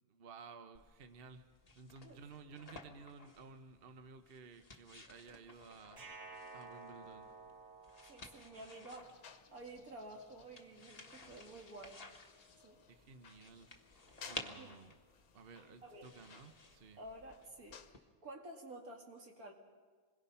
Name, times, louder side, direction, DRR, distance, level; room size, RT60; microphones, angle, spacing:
voice 1, 0.0-1.5 1.7-6.0 6.5-7.3 12.9-13.7 14.3-14.9 15.3-17.0, right 5 dB, 45° right, 8 dB, 1.1 m, -55 dB
sound 1, 0.7-18.0, left 2 dB, 30° left, 1.4 m, -55 dB
sound 2, 6.0-9.0, right 3 dB, 60° right, 2.4 m, -53 dB
voice 2, 8.1-12.0 12.6-12.8 14.5-14.7 15.8-16.1 17.0-19.5, right 1 dB, 85° right, 1 dB, 2.9 m, -52 dB
sound 3, 8.9-17.9, left 7 dB, 90° left, 1.5 m, -60 dB
27.0 x 21.5 x 5.7 m, 1.5 s
omnidirectional pair, 1.5 m